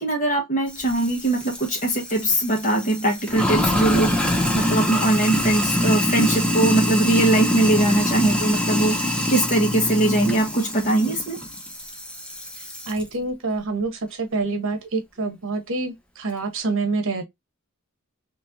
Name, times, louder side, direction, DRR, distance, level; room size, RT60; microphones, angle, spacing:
voice 1, 0.0-11.4, right 1 dB, 35° left, 1.5 m, -21 dB
Sink (filling or washing), 0.7-13.0, left 1 dB, 5° left, 0.7 m, -25 dB
voice 2, 12.9-17.2, right 3 dB, 60° right, 1.1 m, -26 dB
4.2 x 3.0 x 2.7 m
head